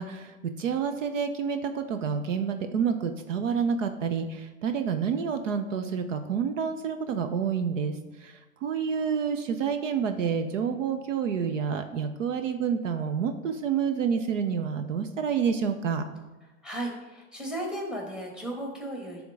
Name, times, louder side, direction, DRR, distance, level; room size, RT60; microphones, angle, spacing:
voice 1, 0.0-7.9 8.2-8.3 8.6-16.0, right 6 dB, 60° right, 8 dB, 0.8 m, -28 dB
voice 2, 16.4-19.2, right 1 dB, ahead, 1 dB, 1.5 m, -35 dB
11.0 x 3.7 x 4.7 m, 1.1 s
hypercardioid pair, 120°, 41 cm